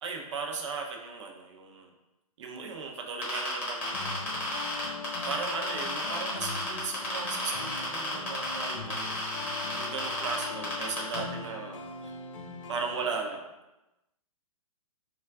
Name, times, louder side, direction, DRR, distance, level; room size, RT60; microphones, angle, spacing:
voice 1, 0.0-1.9 2.4-4.1 5.2-9.2 9.7-12.1 12.7-13.5, right 4 dB, 50° right, 3 dB, 0.5 m, -36 dB
sound 1, 3.2-11.2, left 1 dB, 10° left, 1.0 m, -33 dB
sound 2, 3.8-13.2, left 4 dB, 55° left, 0.4 m, -42 dB
2.3 x 2.2 x 3.4 m, 0.98 s
figure-of-eight pair, 125°, 19 cm